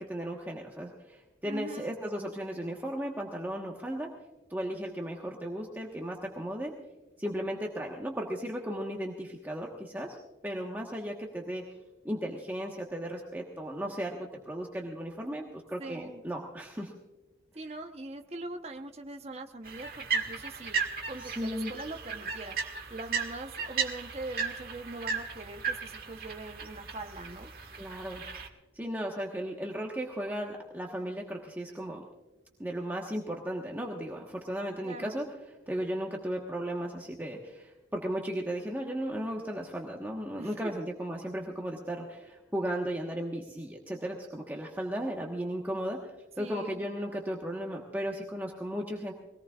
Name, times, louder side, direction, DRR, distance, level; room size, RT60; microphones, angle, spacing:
voice 1, 0.0-4.1 4.5-6.7 7.2-10.2 10.4-11.6 12.0-16.9 21.2-21.7 27.7-28.2 28.7-32.0 32.6-35.3 35.7-49.1, equal, 10° right, -1 dB, 1.2 m, -35 dB
voice 2, 1.5-1.9 15.8-16.2 17.5-20.8 21.1-22.6 22.9-27.5 34.8-35.2 40.4-40.5 41.2-41.3 46.4-46.9, right 2 dB, 35° right, 5 dB, 1.0 m, -42 dB
sound 1, 19.7-28.5, right 5 dB, 55° right, 1.8 m, -36 dB
23.0 x 18.5 x 2.4 m, 1.1 s
head